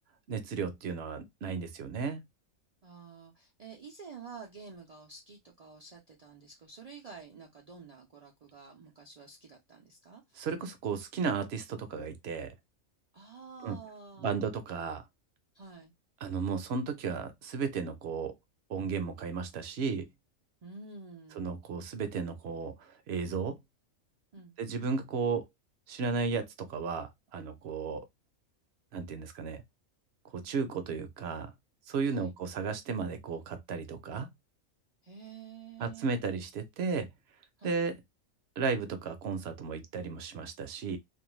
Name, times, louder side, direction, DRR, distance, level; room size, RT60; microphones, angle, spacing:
voice 1, 0.3-2.2 10.4-12.5 13.6-13.8 14.2-15.0 16.2-18.3 18.7-20.1 21.4-23.6 24.6-25.4 25.9-28.1 28.9-29.6 30.3-31.5 31.9-34.3 35.8-37.1 37.6-37.9 38.6-41.0, right 5 dB, 65° right, 0.7 m, -34 dB
voice 2, 2.8-10.2 13.1-14.4 15.5-15.9 20.6-21.5 24.3-24.5 32.1-32.4 35.0-36.1 37.6-37.8, right 5 dB, 80° right, 0.3 m, -49 dB
2.5 x 2.2 x 3.0 m
omnidirectional pair, 1.4 m